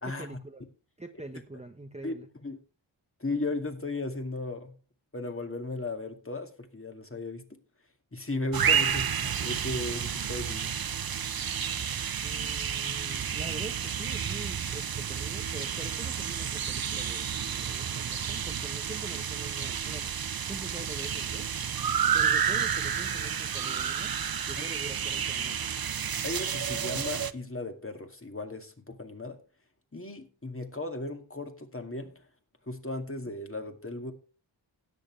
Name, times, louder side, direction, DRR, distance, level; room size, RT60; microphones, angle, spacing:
voice 1, 0.0-0.6 1.0-2.3 12.2-20.1 20.5-21.6 22.1-24.1 24.5-25.6, right 2 dB, 15° right, 1.0 m, -44 dB
voice 2, 3.2-4.7 5.1-7.6 8.1-10.7 24.6-24.7 26.2-29.4 29.9-32.2 32.7-34.1, left 2 dB, 25° left, 2.2 m, -36 dB
sound 1, 8.5-27.3, right 8 dB, 45° right, 0.7 m, -31 dB
17.0 x 6.7 x 3.2 m
cardioid pair, 45°, 49 cm